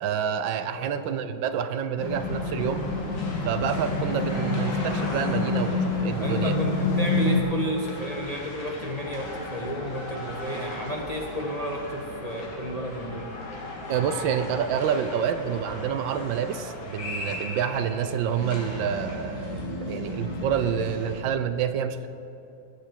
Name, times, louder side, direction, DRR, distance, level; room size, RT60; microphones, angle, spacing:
voice 1, 0.0-2.8 3.4-6.6 13.9-22.1, right 8 dB, 80° right, 10 dB, 1.4 m, -28 dB
sound 1, 2.0-7.4, left 3 dB, 45° left, 1.8 m, -27 dB
sound 2, 2.2-21.2, left 1 dB, 75° left, 2.7 m, -37 dB
voice 2, 6.2-13.3, equal, 25° left, -1 dB, 0.9 m, -32 dB
20.0 x 8.2 x 4.5 m, 3.0 s
omnidirectional pair, 2.1 m